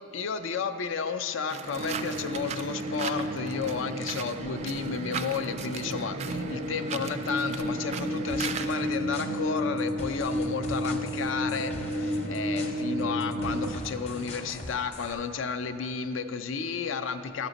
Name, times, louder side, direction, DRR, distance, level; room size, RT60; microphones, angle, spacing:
voice 1, 0.0-17.5, left 5 dB, 80° left, 10 dB, 0.4 m, -32 dB
sound 1, 1.5-8.9, right 6 dB, 35° right, 0.3 m, -38 dB
sound 2, 1.7-13.7, equal, 90° right, 0.6 m, -32 dB
sound 3, 8.3-15.1, left 1 dB, 35° left, 0.8 m, -43 dB
13.5 x 6.0 x 4.0 m, 2.8 s
head